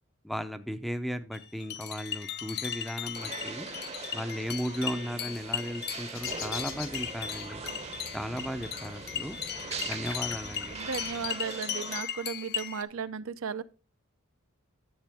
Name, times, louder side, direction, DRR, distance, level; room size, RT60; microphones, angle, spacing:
voice 1, 0.2-3.7 4.1-7.6 8.1-9.4 9.8-10.8, equal, ahead, 0.5 m, -36 dB
sound 1, 1.3-12.8, left 9 dB, 50° left, 0.6 m, -37 dB
sound 2, 3.2-12.0, right 5 dB, 30° right, 0.7 m, -42 dB
sound 3, 6.1-11.3, left 6 dB, 70° left, 1.1 m, -44 dB
voice 2, 10.7-13.6, right 6 dB, 80° right, 0.6 m, -35 dB
10.5 x 7.3 x 3.5 m
head